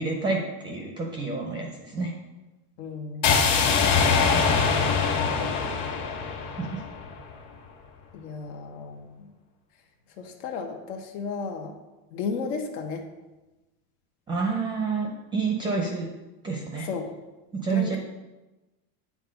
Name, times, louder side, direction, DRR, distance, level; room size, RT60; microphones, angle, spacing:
voice 1, 0.0-2.2 6.6-6.8 14.3-16.1 16.4-16.9 17.5-18.0, right 4 dB, 10° right, 1 dB, 0.4 m, -28 dB
voice 2, 2.8-3.6 4.9-5.7 8.1-9.3 10.2-11.7 12.1-13.1 16.8-17.1 17.7-18.0, left 5 dB, 85° left, 3 dB, 1.2 m, -34 dB
sound 1, 3.2-7.3, left 5 dB, 55° left, 1.5 m, -23 dB
8.8 x 3.6 x 5.1 m, 1.1 s
supercardioid pair, 150°, 44 cm